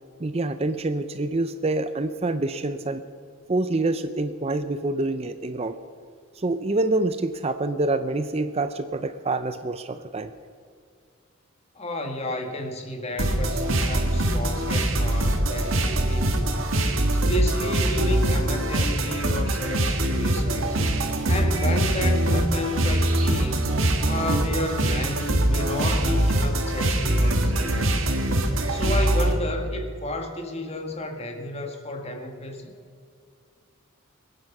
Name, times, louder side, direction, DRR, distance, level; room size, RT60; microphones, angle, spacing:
voice 1, 0.2-3.0 3.5-5.8 6.4-10.3, right 2 dB, 30° right, 10 dB, 0.5 m, -26 dB
voice 2, 11.8-16.7 17.1-20.8 21.3-23.7 24.1-28.1 28.7-32.7, left 1 dB, 30° left, 4 dB, 1.6 m, -32 dB
sound 1, 13.2-29.3, right 1 dB, 65° right, 1.7 m, -23 dB
23.0 x 9.8 x 6.0 m, 2.2 s
head